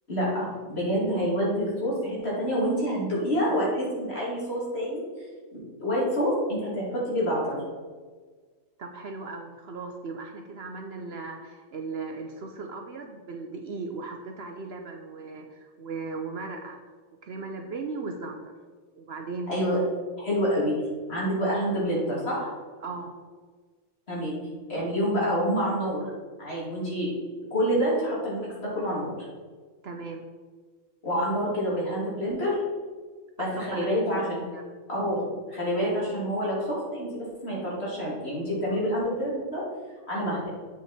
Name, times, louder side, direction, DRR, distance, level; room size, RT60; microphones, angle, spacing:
voice 1, 0.1-5.0 5.5-7.6 19.5-19.8 20.2-20.7 21.1-22.5 24.1-24.4 24.7-26.0 26.4-27.1 27.5-29.1 31.0-32.6 33.4-34.4 34.9-39.6 40.1-40.5, equal, 50° left, -6 dB, 3.0 m, -27 dB
voice 2, 8.8-16.8 17.2-18.5 19.0-19.5 22.8-23.1 29.8-30.2 33.4-33.9 34.3-34.6, right 4 dB, 60° right, 4 dB, 0.9 m, -37 dB
7.9 x 6.2 x 4.2 m, 1.5 s
omnidirectional pair, 1.4 m